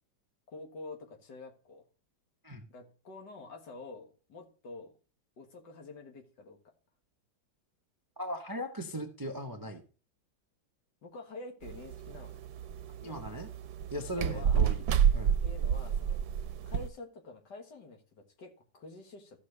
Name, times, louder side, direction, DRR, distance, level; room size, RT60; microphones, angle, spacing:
voice 1, 0.5-1.8 2.7-4.9 5.4-6.6 11.0-12.4 13.0-13.3 14.1-14.6 15.4-16.2 16.7-19.4, left 3 dB, 70° left, 3 dB, 2.1 m, -48 dB
voice 2, 8.2-9.8 13.0-13.5 13.9-14.8 15.1-15.4, equal, 35° right, 5 dB, 0.3 m, -38 dB
sound 1, 11.6-16.9, right 8 dB, 70° right, 1.2 m, -29 dB
14.5 x 6.1 x 3.2 m, 0.38 s
omnidirectional pair, 2.0 m